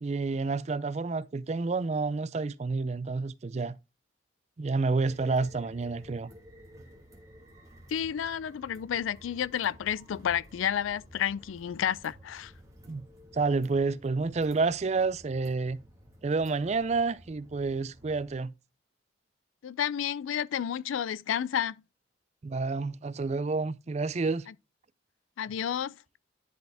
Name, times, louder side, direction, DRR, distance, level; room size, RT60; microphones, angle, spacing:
voice 1, 0.0-3.8 4.6-6.3 12.9-13.1 13.3-15.8 16.2-18.5 22.4-24.5, right 4 dB, 35° right, 0.4 m, -29 dB
sound 1, 5.0-18.3, equal, 15° right, 1.6 m, -53 dB
voice 2, 7.9-12.5 19.6-21.8 25.4-25.9, left 9 dB, 90° left, 0.4 m, -31 dB
10.5 x 4.3 x 3.4 m
head